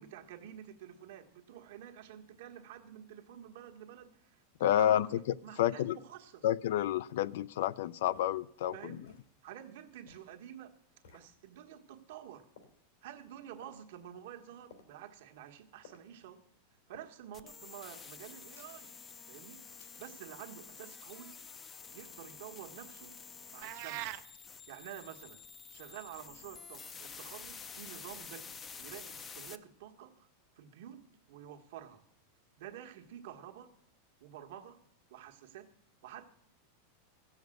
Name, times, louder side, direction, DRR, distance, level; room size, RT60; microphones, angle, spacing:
voice 1, 0.0-4.4 4.8-6.4 8.7-9.2 9.4-10.7 11.1-12.5 13.0-16.4 16.9-18.9 19.3-21.3 21.9-23.1 23.5-24.1 24.7-25.4 25.7-30.3 30.6-32.0 32.6-33.7 34.2-34.8 35.1-35.7 36.0-36.3, right 10 dB, 65° right, 1.4 m, -49 dB
voice 2, 4.6-6.0 6.4-9.0, left 11 dB, 70° left, 0.4 m, -30 dB
sound 1, 7.3-7.4 8.1-8.3 9.1-9.3 10.0-10.3 11.0-11.3 12.6-12.8 13.6-13.8 14.7-15.0 15.8-16.1 16.9-17.1 18.5-18.9 19.8-20.2, left 5 dB, 90° left, 2.9 m, -59 dB
sound 2, 17.3-29.5, left 5 dB, 15° left, 0.5 m, -49 dB
sound 3, 23.6-24.3, right 17 dB, 45° right, 0.5 m, -40 dB
14.5 x 7.2 x 7.7 m
supercardioid pair, 155°, 0 cm